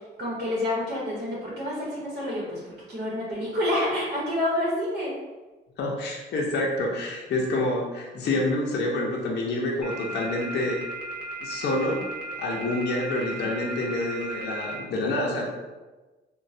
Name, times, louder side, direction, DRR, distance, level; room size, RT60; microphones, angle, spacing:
voice 1, 0.2-2.6 2.9-5.1, left 1 dB, 55° right, -6 dB, 0.9 m, -28 dB
voice 2, 5.8-10.8 11.4-12.0 12.4-15.5, left 2 dB, 60° left, -2 dB, 0.6 m, -27 dB
sound 1, 9.8-14.7, equal, 5° right, 1.0 m, -36 dB
3.0 x 2.1 x 2.6 m, 1.2 s
cardioid pair, 90°, 20 cm